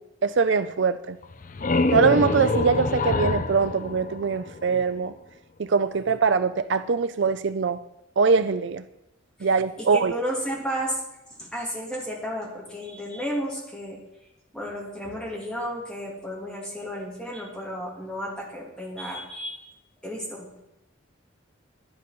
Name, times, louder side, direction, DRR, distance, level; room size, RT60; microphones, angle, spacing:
voice 1, 0.2-1.2 1.9-5.1 5.6-7.8 8.2-8.8 9.4-10.1, right 5 dB, 60° right, 13 dB, 0.5 m, -22 dB
sound 1, 1.2-4.9, left 3 dB, 40° left, 0.6 m, -26 dB
voice 2, 9.8-11.0 11.4-14.0 14.5-19.6 20.0-20.6, equal, 5° left, -4 dB, 3.3 m, -33 dB
11.5 x 10.5 x 6.1 m, 0.89 s
head